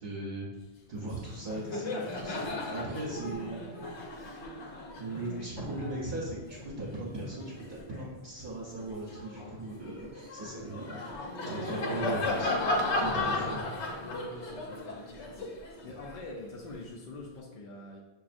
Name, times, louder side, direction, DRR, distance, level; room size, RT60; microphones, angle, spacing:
voice 1, 0.0-0.5 0.9-3.6 3.9-4.3 4.9-11.2 11.5-13.7, right 2 dB, 50° right, -6 dB, 1.0 m, -39 dB
Laughter, 1.0-1.1 1.4-8.1 8.6-16.8, left 2 dB, 85° left, 0.9 m, -36 dB
voice 2, 13.2-13.5 14.0-15.4 15.8-18.0, left 1 dB, 60° left, -2 dB, 0.6 m, -44 dB
5.9 x 2.4 x 2.5 m, 1.1 s
omnidirectional pair, 1.1 m